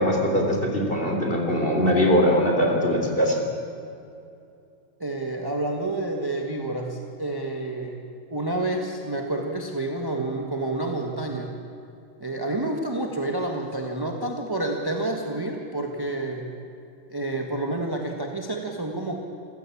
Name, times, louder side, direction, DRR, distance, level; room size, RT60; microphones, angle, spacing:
voice 1, 0.0-3.4, equal, 30° left, 1 dB, 3.7 m, -21 dB
voice 2, 5.0-8.0 8.3-11.6 12.2-16.5 17.1-19.2, right 2 dB, 15° right, 2 dB, 1.6 m, -29 dB
27.5 x 15.0 x 8.7 m, 2.6 s
omnidirectional pair, 2.1 m